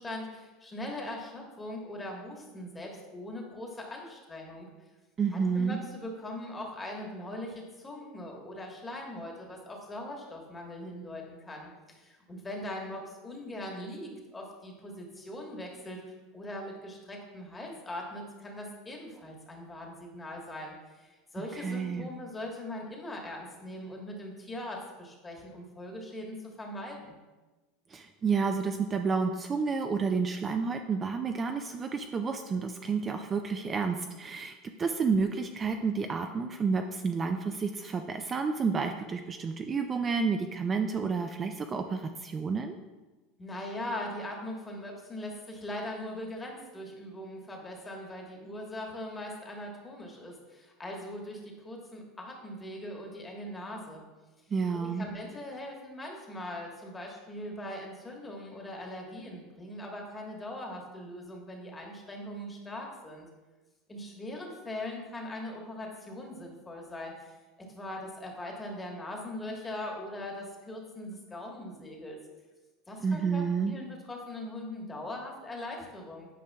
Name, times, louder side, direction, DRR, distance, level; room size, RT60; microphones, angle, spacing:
voice 1, 0.0-4.7 5.3-27.2 43.4-54.0 54.8-63.3 63.9-67.4 67.7-72.2 72.9-76.3, left 1 dB, 15° left, 0 dB, 1.3 m, -41 dB
voice 2, 5.2-5.8 21.4-22.1 27.9-42.7 54.5-55.1 73.0-73.7, right 5 dB, 25° right, 6 dB, 0.3 m, -30 dB
8.5 x 4.9 x 2.3 m, 1.2 s
supercardioid pair, 115°, 0 cm